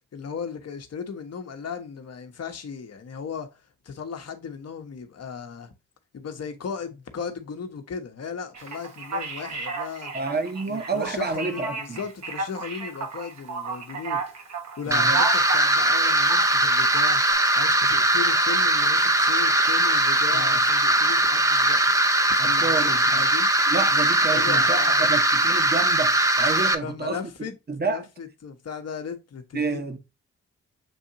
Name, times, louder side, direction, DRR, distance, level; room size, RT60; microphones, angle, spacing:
voice 1, 0.1-3.5 3.8-5.7 6.1-10.1 10.7-14.4 14.8-22.0 22.3-23.5 24.3-25.1 26.7-27.5 27.9-30.0, left 6 dB, 50° left, 1.0 m, -36 dB
Male speech man speaking, 8.5-17.3, right 4 dB, 55° right, 1.1 m, -33 dB
voice 2, 10.1-12.0 14.9-15.2 20.3-20.6 22.4-23.2 23.7-28.0 29.5-30.0, right 4 dB, 30° right, 1.0 m, -30 dB
sound 1, 14.9-26.7, right 1 dB, 10° right, 0.6 m, -20 dB
7.1 x 2.7 x 2.7 m
hypercardioid pair, 40°, 33 cm